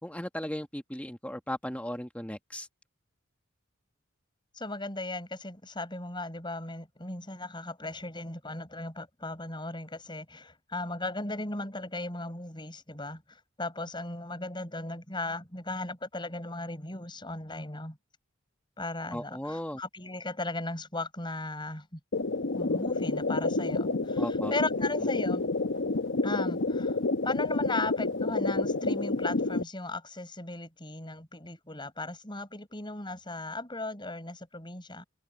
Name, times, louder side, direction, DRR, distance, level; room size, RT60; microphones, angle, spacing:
voice 1, 0.0-2.7 19.1-19.8 24.2-24.5, left 1 dB, 5° left, 1.4 m, -36 dB
voice 2, 4.5-18.0 18.8-22.0 22.6-25.5 26.2-27.0 27.2-35.0, left 2 dB, 25° left, 7.1 m, -37 dB
sound 1, 22.1-29.6, left 3 dB, 60° left, 0.9 m, -29 dB
head